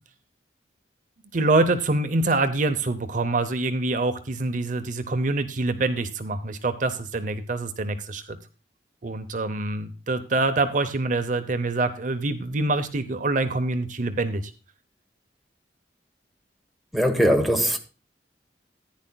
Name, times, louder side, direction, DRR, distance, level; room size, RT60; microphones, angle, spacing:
voice 1, 1.3-8.4 9.0-14.5, right 2 dB, 45° right, 0.7 m, -25 dB
voice 2, 16.9-17.8, equal, ahead, 1.1 m, -20 dB
14.5 x 10.0 x 2.3 m
head